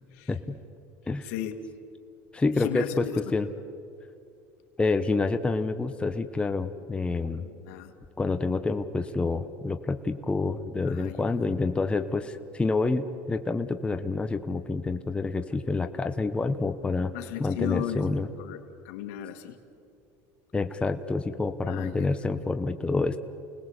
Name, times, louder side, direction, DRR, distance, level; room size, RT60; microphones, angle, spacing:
voice 1, 0.3-0.6 1.0-1.3 2.3-3.1 3.3-3.5 4.8-7.4 8.2-17.1 17.4-18.3 20.5-23.2, left 3 dB, 15° left, 8 dB, 1.0 m, -28 dB
voice 2, 1.2-1.6 2.6-3.3 7.4-7.9 10.9-11.3 17.1-18.6 18.8-19.6 21.7-22.2, left 12 dB, 80° left, 6 dB, 2.3 m, -36 dB
29.0 x 19.5 x 8.2 m, 2.5 s
supercardioid pair, 125°, 8 cm